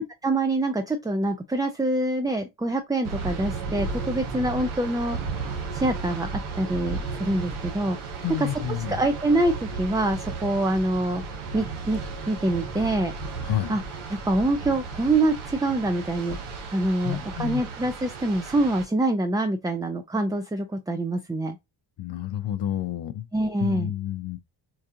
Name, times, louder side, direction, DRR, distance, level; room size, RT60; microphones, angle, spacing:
voice 1, 0.0-5.2 5.7-8.5 8.9-11.2 11.5-12.0 12.3-13.1 13.7-13.8 14.1-16.4 16.7-21.6 23.3-23.9, right 2 dB, 10° right, 0.5 m, -25 dB
sound 1, 3.0-18.9, right 4 dB, 75° right, 1.3 m, -34 dB
voice 2, 8.2-9.0 13.4-13.7 17.0-17.6 22.0-23.3 23.6-24.4, left 11 dB, 55° left, 0.6 m, -29 dB
4.6 x 2.4 x 2.7 m
supercardioid pair, 50°, 49 cm